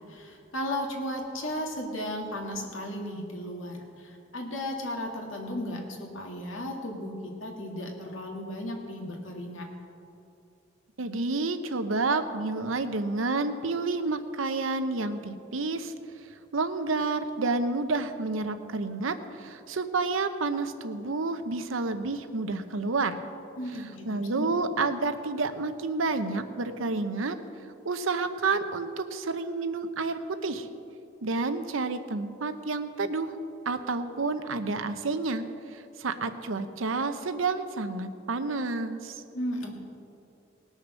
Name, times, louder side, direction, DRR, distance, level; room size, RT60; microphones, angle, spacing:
voice 1, 0.1-9.7 23.6-24.1 24.3-24.5 39.3-39.7, left 1 dB, 80° left, 1 dB, 2.1 m, -35 dB
voice 2, 11.0-15.9 16.5-23.2 24.1-27.4 27.8-30.7 31.2-33.3 33.7-35.4 35.7-39.2, right 3 dB, 85° right, 10 dB, 0.8 m, -29 dB
19.5 x 6.5 x 6.3 m, 2.6 s
head